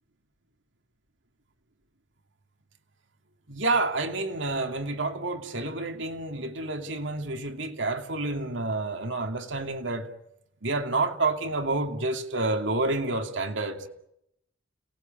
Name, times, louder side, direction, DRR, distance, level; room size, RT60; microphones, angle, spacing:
voice 1, 3.5-10.1 10.6-13.9, right 2 dB, 65° right, 2.6 m, -29 dB
30.0 x 19.5 x 9.2 m
head